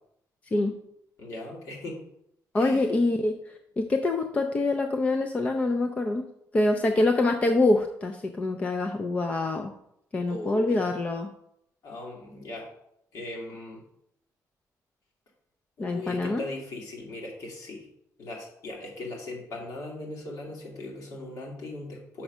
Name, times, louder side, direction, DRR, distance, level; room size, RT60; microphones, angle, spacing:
voice 1, 1.2-2.0 2.5-2.9 10.3-10.8 11.8-12.7 13.1-13.8 15.8-17.9 18.2-22.2, left 2 dB, 60° left, -1 dB, 2.3 m, -38 dB
voice 2, 2.5-6.3 6.5-9.7 10.1-11.3 15.8-16.4, left 2 dB, 20° left, 5 dB, 0.5 m, -25 dB
5.9 x 5.4 x 6.1 m, 0.75 s
cardioid pair, 180°, 6 cm